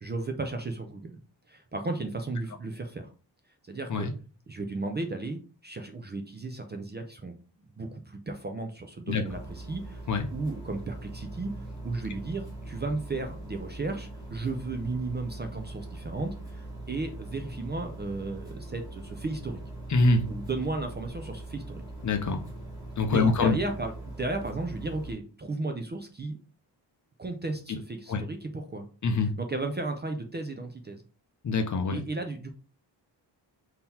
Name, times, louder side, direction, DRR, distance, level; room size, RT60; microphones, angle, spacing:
voice 1, 0.0-1.2 1.5-3.1 3.6-4.1 4.5-10.0 10.3-11.5 11.8-19.6 20.3-21.8 23.1-26.4 27.2-28.9 29.2-31.0 31.9-32.5, right 3 dB, 25° right, 5 dB, 0.4 m, -34 dB
sound 1, 9.3-25.1, right 2 dB, 10° right, 1.5 m, -41 dB
voice 2, 19.9-20.3 22.0-22.4 23.0-23.6 27.7-27.8 28.1-28.2 29.0-29.3 31.4-32.0, left 3 dB, 45° left, 6 dB, 0.6 m, -24 dB
3.8 x 2.8 x 4.1 m, 0.36 s
wide cardioid pair, 175°, 44 cm